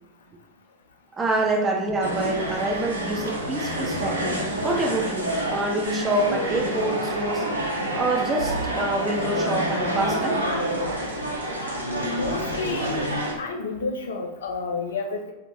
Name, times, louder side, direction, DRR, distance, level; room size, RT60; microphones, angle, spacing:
voice 1, 1.2-7.5 7.9-10.5, right 2 dB, 20° right, 0 dB, 0.5 m, -26 dB
sound 1, 2.0-13.3, right 1 dB, 80° right, 0.6 m, -28 dB
voice 2, 12.0-13.1 13.4-15.3, left 3 dB, 65° left, 2 dB, 0.3 m, -30 dB
2.5 x 2.1 x 3.0 m, 0.97 s
figure-of-eight pair, 90°, 0 cm